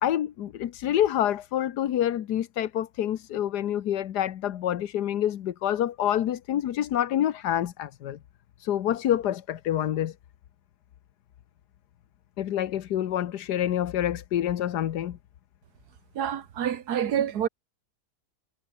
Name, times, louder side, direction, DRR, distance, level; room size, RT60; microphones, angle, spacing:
voice 1, 0.0-8.2 8.6-10.1 12.4-15.2, left 11 dB, 80° left, 1.5 m, -27 dB
voice 2, 16.1-17.5, right 9 dB, 70° right, 1.7 m, -27 dB
omnidirectional pair, 1.7 m